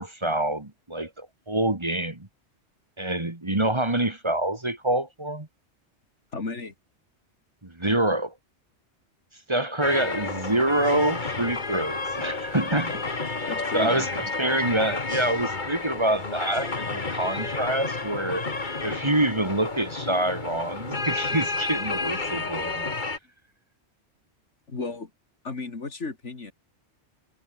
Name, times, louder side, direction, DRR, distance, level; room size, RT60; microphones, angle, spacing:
voice 1, 0.0-2.3 3.0-5.5 7.6-8.3 9.5-13.0 13.4-18.5 18.8-22.9, right 1 dB, 25° right, 1.9 m, -26 dB
voice 2, 6.3-6.7 13.5-14.1 24.7-25.1 25.4-26.5, left 3 dB, 90° left, 3.0 m, -34 dB
sound 1, 9.8-23.2, left 3 dB, 40° left, 2.1 m, -31 dB
omnidirectional pair, 1.2 m